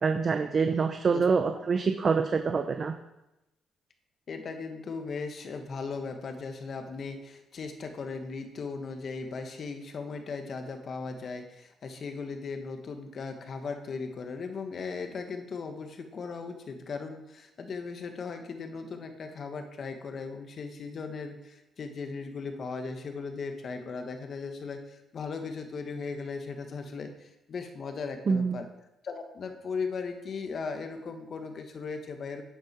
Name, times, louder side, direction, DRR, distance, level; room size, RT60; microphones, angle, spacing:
voice 1, 0.0-3.0 28.3-28.6, right 5 dB, 45° right, 7 dB, 0.7 m, -26 dB
voice 2, 4.3-28.7 29.0-32.4, left 4 dB, 50° left, 6 dB, 1.5 m, -37 dB
11.5 x 8.9 x 4.6 m, 0.95 s
cardioid pair, 90°, 0 cm